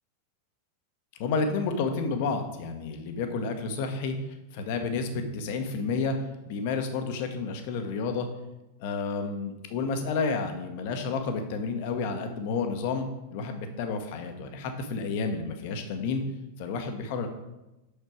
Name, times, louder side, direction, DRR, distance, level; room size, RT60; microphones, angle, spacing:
voice 1, 1.2-4.1 4.5-6.2 6.4-8.3 8.8-16.2 16.6-17.3, left 4 dB, 50° left, 6 dB, 1.1 m, -30 dB
6.6 x 6.5 x 4.9 m, 0.99 s
figure-of-eight pair, 90°, 0 cm